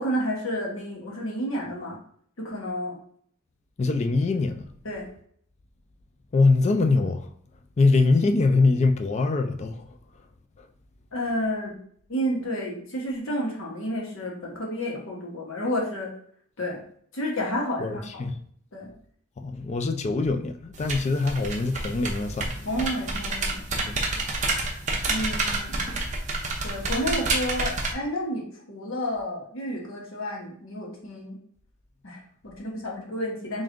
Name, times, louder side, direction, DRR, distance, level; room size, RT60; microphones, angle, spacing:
voice 1, 0.0-2.0 2.4-3.0 4.8-5.1 11.1-11.7 12.1-16.1 16.6-16.8 17.1-18.2 18.7-18.9 22.6-24.0 25.1-26.0 26.6-31.4 32.0-33.6, equal, 65° left, 1.1 m, -31 dB
voice 2, 3.8-4.6 6.3-7.3 7.8-9.9 10.6-10.7 17.8-18.4 19.4-22.5 23.8-24.0, left 3 dB, 30° left, 0.3 m, -23 dB
sound 1, 20.7-27.9, right 2 dB, 35° right, 0.7 m, -29 dB
3.6 x 2.5 x 3.7 m
head